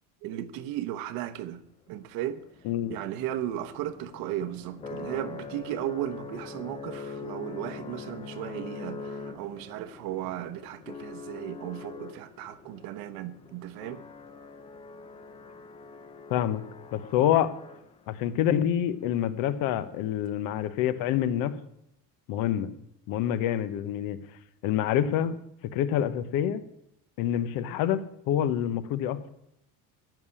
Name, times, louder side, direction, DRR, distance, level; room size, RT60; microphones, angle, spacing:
voice 1, 0.2-1.6 1.9-2.4 2.9-14.0, right 12 dB, 60° right, 1.0 m, -35 dB
sound 1, 2.0-18.2, left 4 dB, 15° left, 0.5 m, -43 dB
voice 2, 2.6-3.0 16.3-16.6 16.9-17.5 18.1-21.5 22.3-22.7 23.1-24.2 24.6-25.3 25.7-26.6 27.2-28.0 28.3-29.3, left 10 dB, 60° left, 1.0 m, -27 dB
14.0 x 5.8 x 9.8 m
cardioid pair, 170°, 39 cm